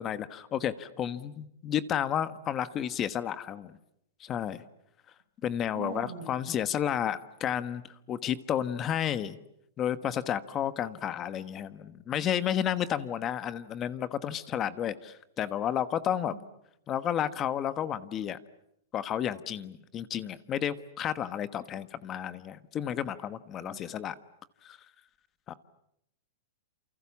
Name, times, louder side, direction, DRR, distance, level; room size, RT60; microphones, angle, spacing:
voice 1, 0.0-3.7 4.2-4.6 5.4-9.4 9.8-16.3 16.9-18.4 18.9-24.1 24.6-24.8 25.5-25.6, left 9 dB, 25° left, 13 dB, 1.2 m, -32 dB
voice 2, 5.7-6.3 16.2-16.4 23.6-23.8, right 4 dB, 85° right, 11 dB, 6.3 m, -41 dB
29.0 x 28.5 x 7.3 m, 0.79 s
supercardioid pair, 150°, 0 cm